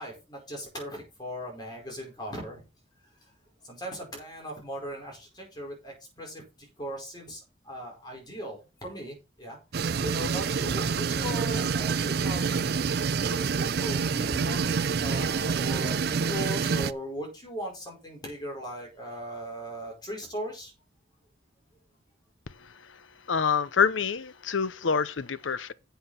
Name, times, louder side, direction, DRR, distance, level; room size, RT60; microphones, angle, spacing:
voice 1, 0.0-2.7 3.6-9.6 10.0-12.6 13.2-20.7, equal, 20° left, 4.9 m, -38 dB
sound 1, 9.7-16.9, right 5 dB, 55° right, 0.4 m, -27 dB
voice 2, 22.6-23.0 23.3-25.7, left 6 dB, 85° left, 0.7 m, -27 dB
7.8 x 6.9 x 5.8 m
head